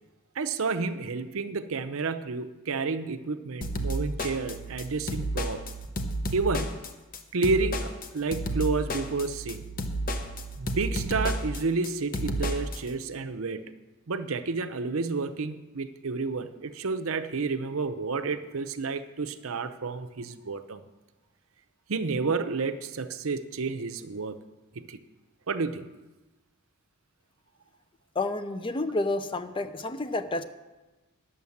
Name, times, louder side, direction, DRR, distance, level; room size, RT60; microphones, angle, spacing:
voice 1, 0.4-5.6 6.3-6.8 7.3-9.7 10.6-13.7 14.1-20.8 21.9-24.4 24.7-25.0 25.5-25.9, right 4 dB, 65° right, 9 dB, 0.7 m, -30 dB
sound 1, 3.6-12.8, right 1 dB, 40° left, 0.9 m, -32 dB
voice 2, 28.2-30.4, left 2 dB, 25° left, 11 dB, 0.5 m, -30 dB
10.5 x 7.3 x 7.1 m, 1.1 s
head